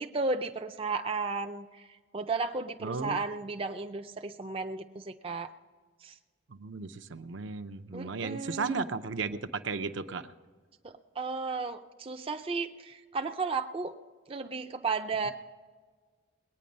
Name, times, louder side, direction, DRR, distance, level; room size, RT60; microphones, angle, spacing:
voice 1, 0.0-1.9 2.1-5.5 6.0-6.1 7.9-8.8 10.8-13.9 14.3-15.3, right 4 dB, 30° right, 6 dB, 0.4 m, -34 dB
voice 2, 2.8-3.2 6.5-10.3, right 4 dB, 70° right, 9 dB, 0.6 m, -35 dB
20.0 x 9.4 x 5.3 m, 1.5 s
head